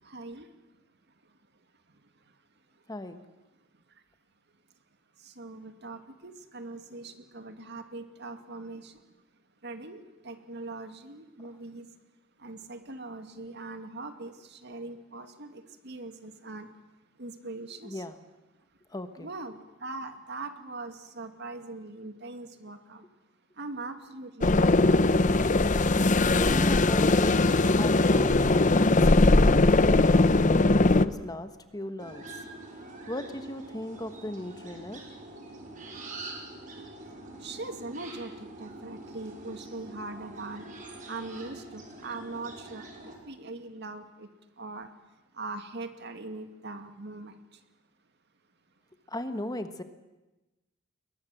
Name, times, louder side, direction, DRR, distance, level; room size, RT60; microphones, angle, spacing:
voice 1, 0.1-0.5 5.4-8.9 9.6-11.8 12.4-16.7 17.2-18.0 19.2-23.0 23.6-24.8 37.4-40.6 41.1-42.9 43.3-44.3 44.6-44.9 45.4-47.3, right 3 dB, 55° right, 7 dB, 2.4 m, -41 dB
voice 2, 2.9-3.2 17.8-18.2 18.9-19.3 26.3-32.2 33.1-35.0 49.1-49.8, left 1 dB, 20° left, 9 dB, 1.3 m, -37 dB
sound 1, 24.4-31.1, left 2 dB, 40° left, 0.8 m, -20 dB
sound 2, 32.0-43.2, right 2 dB, 40° right, 5.8 m, -45 dB
30.0 x 22.0 x 7.8 m, 1.1 s
head